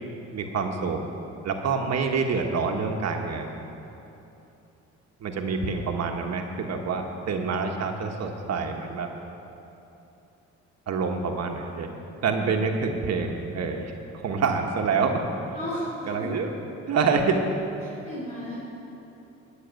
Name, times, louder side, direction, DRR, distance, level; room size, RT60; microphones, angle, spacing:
voice 1, 0.3-1.0 1.4-3.6 5.2-9.1 10.9-15.2 16.1-16.5 16.9-17.4, right 5 dB, 60° right, 3 dB, 1.3 m, -27 dB
voice 2, 15.5-16.3 17.8-18.6, left 1 dB, 25° left, -10 dB, 3.7 m, -34 dB
13.5 x 6.5 x 9.0 m, 2.9 s
cardioid pair, 90°, 30 cm